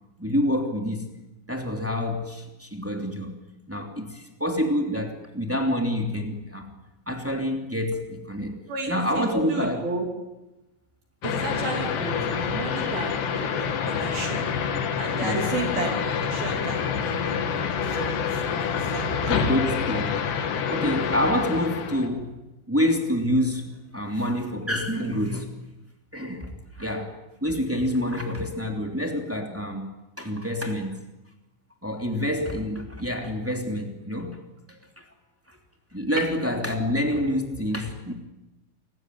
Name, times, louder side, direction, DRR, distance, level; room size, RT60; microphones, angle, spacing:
voice 1, 0.2-1.1 1.5-3.3 3.7-6.7 7.1-8.6 8.9-9.8 15.2-15.5 19.3-20.4 20.7-22.4 22.7-25.6 26.1-26.5 26.8-27.1 27.4-29.9 30.2-31.0 31.8-34.4 34.7-35.0 35.5-35.6 35.9-38.1, left 1 dB, 5° right, 3 dB, 2.0 m, -27 dB
voice 2, 8.7-10.1 11.2-14.5 15.0-18.2 18.5-19.4, right 3 dB, 60° right, 3 dB, 4.5 m, -33 dB
sound 1, 11.2-22.1, left 7 dB, 70° left, 4.1 m, -27 dB
28.5 x 20.0 x 9.5 m, 0.97 s
omnidirectional pair, 5.2 m